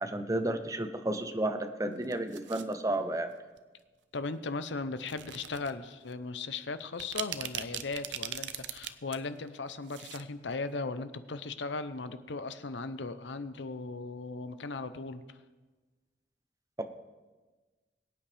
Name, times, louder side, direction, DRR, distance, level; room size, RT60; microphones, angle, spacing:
voice 1, 0.0-3.3 16.8-16.9, right 1 dB, 20° right, 7 dB, 0.7 m, -32 dB
sound 1, 2.0-2.7 3.6-3.8 5.0-5.7 6.1-6.2 6.8-9.2 9.5-10.2 10.5-10.6, right 10 dB, 75° right, 0.6 m, -39 dB
voice 2, 4.1-15.4, left 3 dB, 80° left, 12 dB, 0.7 m, -37 dB
22.0 x 8.8 x 3.4 m, 1.3 s
head